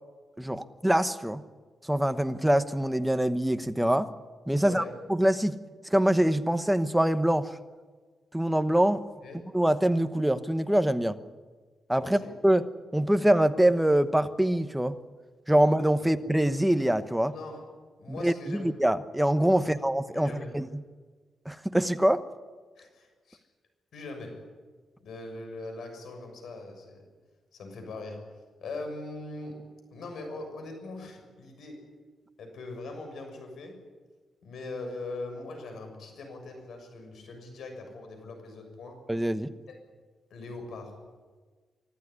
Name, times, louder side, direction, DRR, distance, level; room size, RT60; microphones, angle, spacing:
voice 1, 0.4-1.4 1.8-4.1 4.5-4.8 5.1-5.6 5.9-7.5 8.3-9.0 9.5-11.2 11.9-12.6 12.9-14.9 15.5-17.3 18.1-20.7 21.5-22.2 39.1-39.5, right 1 dB, 5° right, 10 dB, 1.1 m, -24 dB
voice 2, 4.6-5.0 9.2-9.5 12.0-12.3 17.3-17.6 18.0-18.7 19.6-19.8 20.1-20.5 22.8-23.4 23.9-24.4 25.0-27.0 27.5-28.3 28.6-29.6 29.9-31.9 32.4-33.8 34.4-39.0 39.7-39.8 40.3-41.0, left 2 dB, 75° left, 5 dB, 6.7 m, -41 dB
25.0 x 14.0 x 9.9 m, 1.4 s
cardioid pair, 125°, 0 cm